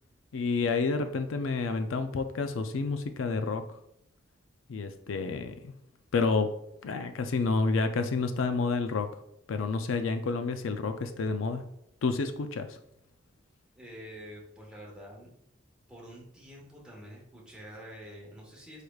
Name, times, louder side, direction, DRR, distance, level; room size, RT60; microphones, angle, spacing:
voice 1, 0.3-3.6 4.7-5.7 6.1-6.5 6.8-9.1 9.5-11.6 12.0-12.8, left 4 dB, 85° left, 8 dB, 0.4 m, -29 dB
voice 2, 13.8-15.3 15.9-18.8, equal, 5° right, -4 dB, 1.2 m, -47 dB
4.8 x 4.7 x 2.3 m, 0.74 s
head